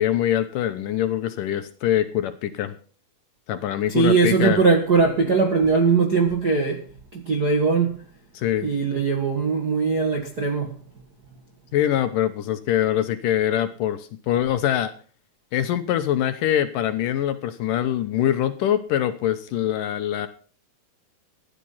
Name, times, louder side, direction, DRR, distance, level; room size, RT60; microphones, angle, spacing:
voice 1, 0.0-2.7 3.5-4.6 8.3-8.7 11.7-14.9 15.5-20.3, left 11 dB, 70° left, 2.3 m, -23 dB
voice 2, 3.9-6.9 7.1-8.0 8.6-10.7, right 4 dB, 45° right, 1.2 m, -20 dB
15.0 x 10.5 x 5.6 m
omnidirectional pair, 4.4 m